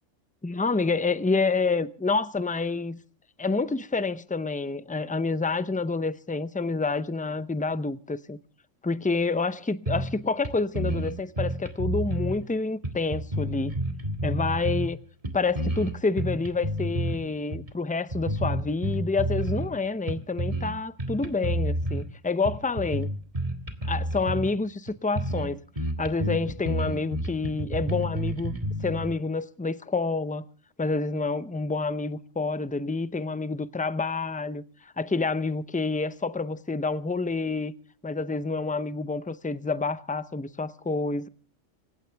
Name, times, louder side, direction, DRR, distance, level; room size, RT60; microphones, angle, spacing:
voice 1, 0.4-3.0 3.4-8.4 8.8-13.7 14.2-15.0 15.3-23.1 23.9-25.6 26.0-28.5 28.8-30.4 30.8-34.6 35.0-37.7 38.0-41.3, left 3 dB, 10° left, 0.4 m, -28 dB
sound 1, 9.9-10.2 10.4-10.5 10.7-12.4 12.8-14.9 15.2-17.2 17.5-17.7 18.1-19.7 20.1-20.7 21.0-22.1 22.4-24.5 24.9-25.0 25.2-25.5 25.8-29.1, right 1 dB, 25° right, 2.1 m, -29 dB
26.0 x 15.5 x 3.4 m
omnidirectional pair, 1.3 m